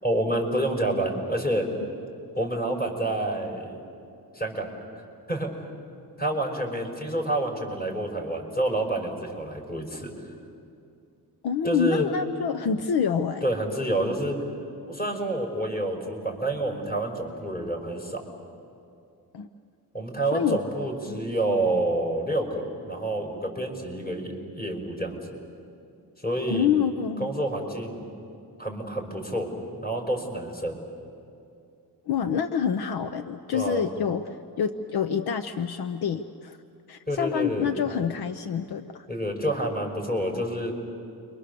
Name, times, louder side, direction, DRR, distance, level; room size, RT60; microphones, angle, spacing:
voice 1, 0.0-1.7 2.4-3.8 4.3-4.7 5.3-5.5 6.2-10.1 11.6-12.1 13.4-14.4 14.9-18.2 19.9-25.2 26.2-26.7 27.2-28.0 28.6-30.8 33.5-33.8 37.1-37.7 39.1-40.7, right 1 dB, 25° left, 1 dB, 5.5 m, -28 dB
voice 2, 11.4-13.4 19.3-19.5 20.3-20.6 21.1-21.2 26.5-27.3 32.1-36.6 36.9-39.1, left 7 dB, 70° left, 8 dB, 0.9 m, -27 dB
29.5 x 24.5 x 6.8 m, 2.5 s
cardioid pair, 105°, 40 cm